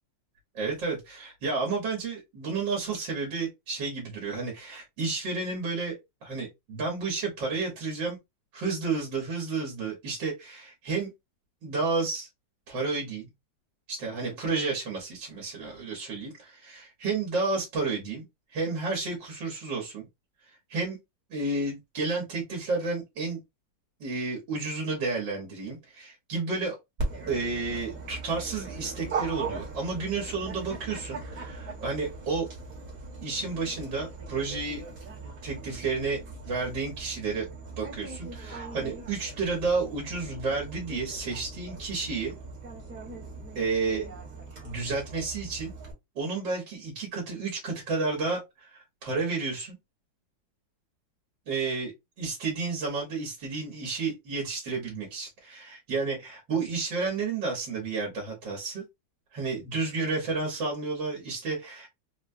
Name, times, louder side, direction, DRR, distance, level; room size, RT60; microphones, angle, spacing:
voice 1, 0.6-8.2 8.5-11.1 11.6-12.3 12.7-13.3 13.9-18.2 18.5-20.1 20.7-21.0 21.3-23.4 24.0-26.8 27.3-32.5 33.2-34.8 35.4-36.2 36.5-37.5 37.8-42.3 43.6-44.1 44.6-45.7 46.2-49.8 51.5-51.9 52.2-58.8 59.3-61.9, right 4 dB, 70° right, 1.9 m, -31 dB
Dog, 27.0-45.9, right 3 dB, 50° right, 1.7 m, -39 dB
4.2 x 2.2 x 2.6 m
omnidirectional pair, 2.0 m